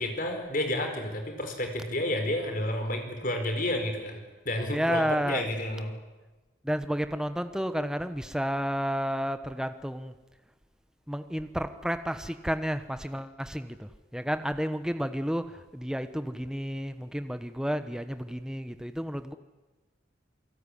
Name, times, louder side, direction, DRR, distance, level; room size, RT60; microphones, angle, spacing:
voice 1, 0.0-4.2 4.4-5.9, left 1 dB, 45° left, 5 dB, 4.7 m, -30 dB
voice 2, 4.7-5.4 6.6-10.1 11.1-19.3, equal, 5° right, 10 dB, 1.0 m, -31 dB
28.0 x 18.5 x 10.0 m, 1.2 s
head